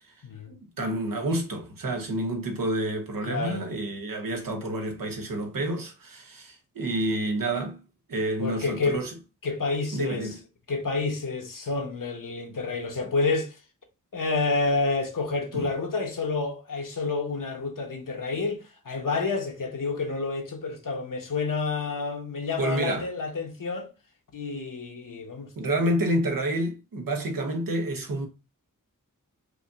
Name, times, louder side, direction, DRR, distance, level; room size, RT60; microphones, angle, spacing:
voice 1, 0.5-7.8 8.1-9.1 9.9-10.4 15.5-15.7 22.6-23.1 25.6-28.3, right 1 dB, 85° right, 1.0 m, -29 dB
voice 2, 3.2-3.6 8.4-9.0 9.4-10.3 10.7-13.6 14.1-23.9 24.3-26.0, left 3 dB, 70° left, 1.1 m, -29 dB
4.8 x 2.7 x 2.4 m
wide cardioid pair, 55°, 33 cm